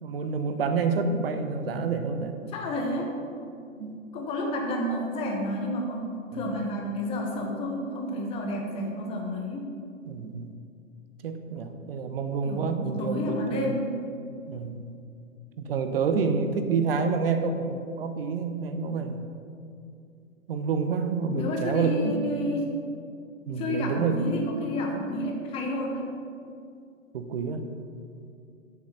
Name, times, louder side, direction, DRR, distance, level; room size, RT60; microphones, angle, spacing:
voice 1, 0.0-2.4 3.8-4.0 6.3-6.5 10.1-10.5 11.2-13.7 14.5-14.9 15.6-19.2 20.5-22.4 23.5-24.2 27.1-27.6, right 5 dB, 45° right, 8 dB, 0.9 m, -28 dB
voice 2, 2.5-3.1 4.1-9.7 12.4-14.0 21.3-22.7 23.6-26.1, left 1 dB, 15° left, 1 dB, 0.9 m, -30 dB
8.6 x 7.2 x 5.6 m, 2.5 s
figure-of-eight pair, 130°, 41 cm